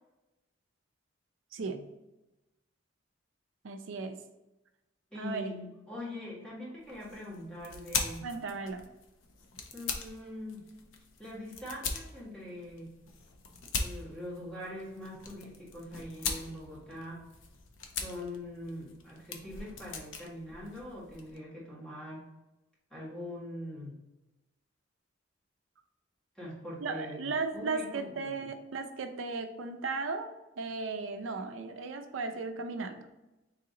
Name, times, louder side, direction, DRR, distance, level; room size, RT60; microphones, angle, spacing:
voice 1, 1.5-1.9 3.6-4.2 5.2-5.5 8.2-8.9 26.8-33.0, right 4 dB, 85° right, 7 dB, 0.5 m, -36 dB
voice 2, 5.1-8.3 9.7-10.6 11.2-12.9 13.8-17.2 17.9-22.2 22.9-24.0 26.3-28.5, left 1 dB, 5° left, -7 dB, 1.4 m, -43 dB
sound 1, 6.8-21.4, left 4 dB, 85° left, 0.6 m, -41 dB
4.0 x 2.9 x 3.7 m, 1.0 s
head